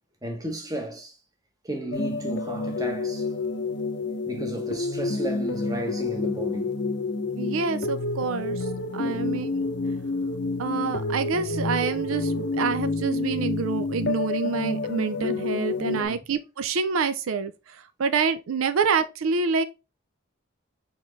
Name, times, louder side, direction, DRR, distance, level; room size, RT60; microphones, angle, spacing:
voice 1, 0.2-1.2 1.6-3.3 4.3-6.8 9.0-9.3 15.9-16.2, right 1 dB, 20° right, 0.9 m, -34 dB
sound 1, 1.9-16.1, left 3 dB, 55° left, 0.6 m, -29 dB
voice 2, 7.4-8.7 8.9-9.7 10.6-19.6, right 5 dB, 85° right, 0.5 m, -27 dB
4.2 x 3.7 x 3.1 m
head